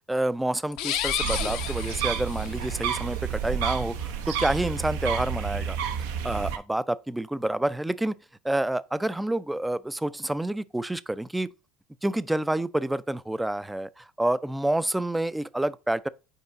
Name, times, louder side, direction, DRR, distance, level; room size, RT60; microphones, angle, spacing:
voice 1, 0.1-5.8 6.2-8.1 8.4-11.5 12.0-16.1, right 1 dB, 5° right, 0.3 m, -28 dB
sound 1, 0.7-2.7, left 10 dB, 75° left, 0.8 m, -31 dB
sound 2, 1.2-6.6, right 8 dB, 85° right, 0.7 m, -30 dB
5.5 x 4.5 x 3.8 m
supercardioid pair, 100°, 0 cm